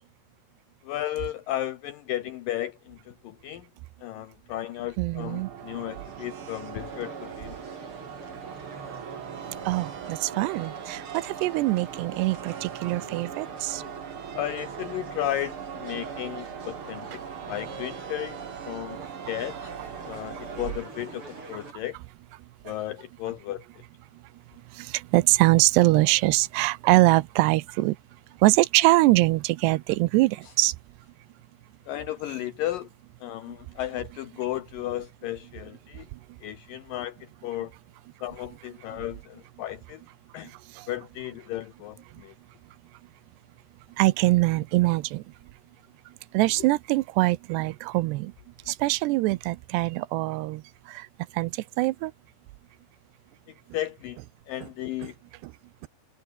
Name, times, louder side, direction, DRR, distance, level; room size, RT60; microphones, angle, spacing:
voice 1, 0.8-3.7 4.0-7.6 14.3-18.4 18.7-19.0 19.3-19.7 20.0-22.0 22.7-23.6 31.9-32.9 33.2-36.1 36.4-37.7 38.2-40.0 40.3-40.5 40.9-42.3 53.7-54.2 54.5-55.2, left 13 dB, 80° left, 2.0 m, -34 dB
voice 2, 5.0-5.5 9.7-13.8 20.3-20.4 22.7-22.8 24.7-28.0 28.4-30.7 33.5-33.6 40.4-40.9 44.0-45.2 46.3-48.3 48.7-51.1 51.3-52.1 55.0-55.1 55.4-55.5, right 20 dB, 85° right, 2.7 m, -23 dB
sound 1, 5.2-20.7, right 8 dB, 65° right, 1.3 m, -40 dB
sound 2, 5.6-21.7, right 3 dB, 30° right, 7.6 m, -45 dB
omnidirectional pair, 5.0 m